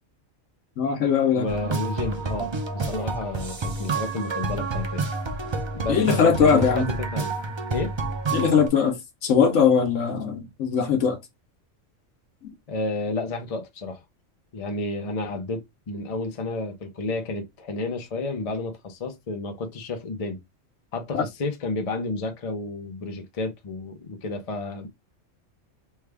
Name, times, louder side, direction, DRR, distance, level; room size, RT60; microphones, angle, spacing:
voice 1, 0.8-1.5 5.9-6.9 8.3-11.2 21.1-21.2, left 6 dB, 70° left, 1.2 m, -20 dB
voice 2, 1.3-5.1 5.7-7.3 7.7-7.9 12.7-14.0 14.5-20.4 20.9-24.9, left 2 dB, 35° left, 0.6 m, -31 dB
sound 1, 1.5-8.7, right 3 dB, 45° right, 0.3 m, -29 dB
3.3 x 2.3 x 3.3 m
omnidirectional pair, 1.4 m